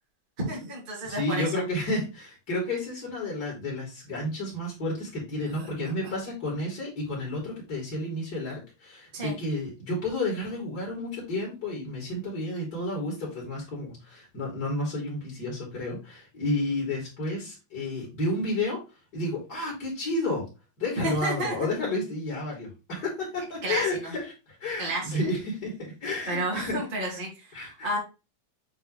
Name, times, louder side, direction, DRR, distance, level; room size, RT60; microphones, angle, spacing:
voice 1, 0.4-1.6 5.6-6.2 9.1-9.4 21.0-21.6 23.6-24.1 24.8-25.2 26.3-28.0, right 1 dB, 15° right, -4 dB, 1.7 m, -32 dB
voice 2, 1.0-18.8 19.1-20.5 20.8-27.2 27.5-27.9, left 1 dB, 25° left, -4 dB, 3.5 m, -31 dB
8.3 x 5.1 x 3.2 m, 0.29 s
omnidirectional pair, 5.6 m